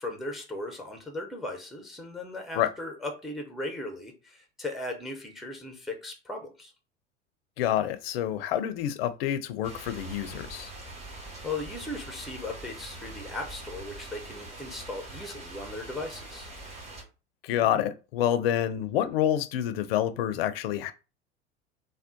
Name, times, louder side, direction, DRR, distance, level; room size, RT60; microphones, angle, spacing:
voice 1, 0.0-6.7 11.4-16.5, left 2 dB, ahead, 0.5 m, -37 dB
voice 2, 7.6-10.7 17.4-20.9, left 11 dB, 60° left, 0.4 m, -28 dB
sound 1, 9.6-17.0, right 2 dB, 20° right, 1.1 m, -43 dB
3.5 x 2.1 x 2.6 m
figure-of-eight pair, 75°, 35 cm